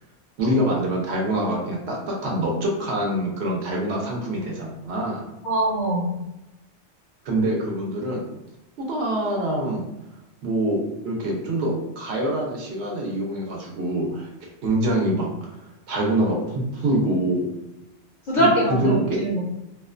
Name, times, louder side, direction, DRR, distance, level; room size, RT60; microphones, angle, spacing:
voice 1, 0.4-5.2 7.2-8.3 8.8-9.9 10.4-15.3 15.9-17.5 18.3-19.2, right 1 dB, 75° right, -1 dB, 0.9 m, -25 dB
voice 2, 5.4-6.1 18.3-19.4, right 1 dB, 55° left, -4 dB, 0.5 m, -22 dB
2.4 x 2.2 x 2.4 m, 0.92 s
omnidirectional pair, 1.2 m